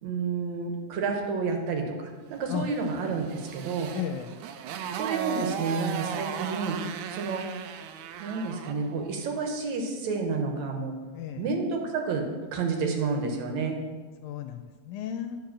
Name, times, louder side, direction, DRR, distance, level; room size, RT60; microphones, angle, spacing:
voice 1, 0.0-2.0 2.3-3.9 4.9-6.8 7.1-7.5 8.2-11.0 11.4-13.8, right 4 dB, 75° right, 3 dB, 2.4 m, -30 dB
Motorcycle, 2.8-8.9, right 8 dB, 90° right, 2.0 m, -36 dB
voice 2, 3.9-4.3 11.1-11.5 14.2-15.4, left 9 dB, 90° left, 6 dB, 2.0 m, -34 dB
10.5 x 4.9 x 5.9 m, 1.4 s
omnidirectional pair, 3.4 m